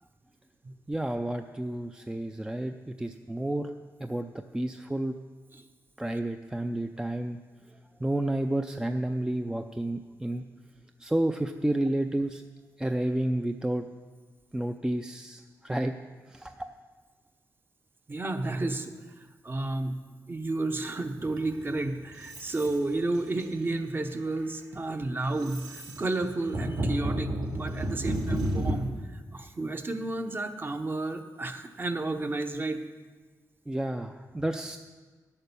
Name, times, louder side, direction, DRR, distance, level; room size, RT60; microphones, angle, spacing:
voice 1, 0.9-3.7 4.0-5.1 6.0-7.4 7.7-10.4 11.0-12.4 12.8-13.9 14.5-15.9 16.3-16.7 33.7-34.8, right 1 dB, 10° right, 6 dB, 0.5 m, -31 dB
voice 2, 18.1-18.9 19.2-20.0 20.3-32.8, right 2 dB, 30° right, 7 dB, 0.9 m, -32 dB
sound 1, 21.2-22.8 23.1-23.6 24.1-24.4 24.8-28.7, right 1 dB, 70° right, 2.5 m, -32 dB
10.5 x 8.8 x 6.9 m, 1.4 s
cardioid pair, 100°, 7 cm